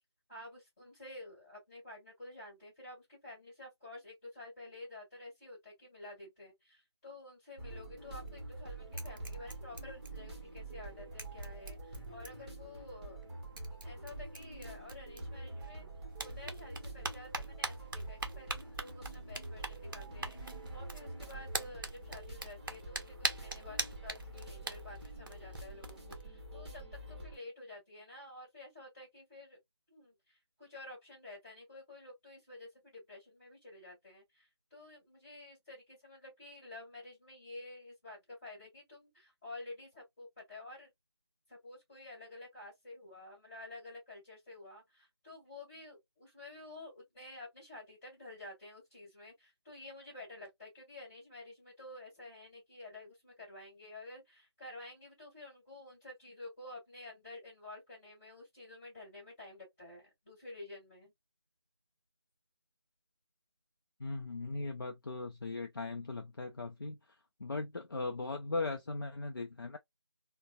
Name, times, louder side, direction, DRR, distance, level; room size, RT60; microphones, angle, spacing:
voice 1, 0.3-13.2 13.6-15.9 16.2-26.8 27.1-29.6 29.9-40.9 41.5-61.1, left 2 dB, 20° left, 1.6 m, -51 dB
sound 1, 7.6-27.4, right 2 dB, 20° right, 0.9 m, -46 dB
sound 2, 8.1-8.6 8.9-10.5 10.8-10.9 11.2-12.6 13.2-13.3 13.6-15.7 16.1-26.2, right 2 dB, 50° right, 0.6 m, -43 dB
voice 2, 64.0-67.0 67.4-69.8, left 3 dB, 50° left, 0.5 m, -38 dB
3.9 x 2.1 x 2.3 m
figure-of-eight pair, 165°, 14 cm